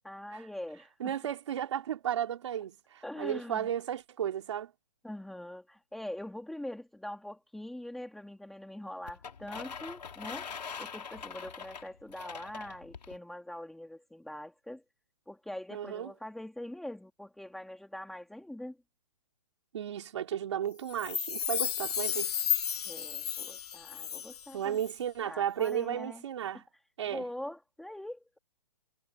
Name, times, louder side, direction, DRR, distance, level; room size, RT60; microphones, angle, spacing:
voice 1, 0.0-1.1 3.0-3.7 5.0-10.5 10.8-14.8 15.3-18.8 22.9-24.8 25.2-26.2 26.5-26.6 27.1-28.4, left 1 dB, ahead, 1.7 m, -43 dB
voice 2, 1.0-4.7 15.7-16.1 19.7-22.3 24.5-26.6 27.0-27.2, right 10 dB, 45° right, 4.0 m, -34 dB
sound 1, 9.1-13.2, left 6 dB, 90° left, 3.7 m, -43 dB
Chime, 20.9-24.5 24.8-24.9, left 8 dB, 70° left, 3.6 m, -33 dB
hypercardioid pair, 170°, 21 cm